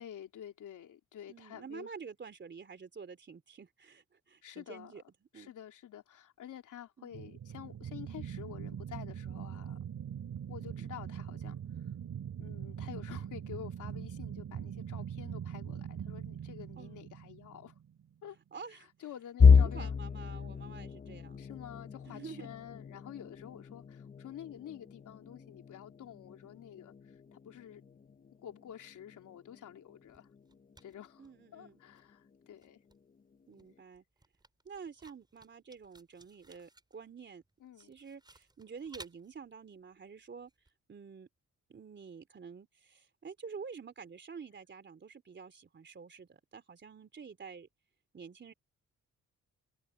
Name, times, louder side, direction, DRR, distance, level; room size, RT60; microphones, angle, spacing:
voice 1, 0.0-1.9 4.4-4.9 5.3-9.8 10.5-11.6 12.4-17.8 18.2-18.4 18.8-20.0 21.4-27.8 28.4-30.3 30.8-32.8 37.6-37.9, left 10 dB, 80° left, 3.5 m, -49 dB
voice 2, 1.3-5.0 5.3-5.5 7.0-7.4 10.6-11.0 16.8-17.0 18.5-18.9 19.5-21.4 22.1-22.5 31.2-31.8 33.5-34.0 34.6-37.4 37.8-40.5 40.9-41.3 41.7-47.7 48.1-48.5, right 6 dB, 35° right, 3.2 m, -48 dB
sound 1, 7.1-18.1, right 9 dB, 65° right, 5.2 m, -42 dB
sound 2, 19.4-31.2 31.7-31.9 32.3-32.5 33.3-33.8, left 6 dB, 30° left, 0.8 m, -31 dB
sound 3, 30.0-31.7 31.9-40.7, right 2 dB, 15° right, 4.8 m, -58 dB
cardioid pair, 110°, 30 cm